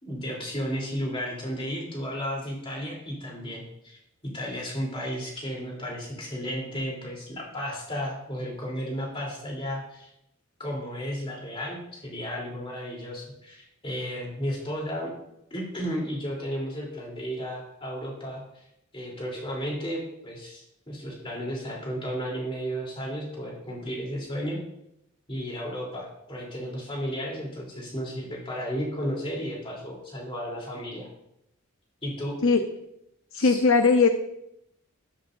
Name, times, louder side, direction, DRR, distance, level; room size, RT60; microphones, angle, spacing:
voice 1, 0.0-10.1 10.6-15.1 15.5-18.6 18.9-24.6 25.3-31.1 32.0-32.4 33.3-33.6, equal, 25° left, -2 dB, 3.4 m, -33 dB
voice 2, 33.3-34.1, left 4 dB, 75° left, 6 dB, 0.8 m, -19 dB
13.0 x 12.5 x 2.7 m, 0.79 s
head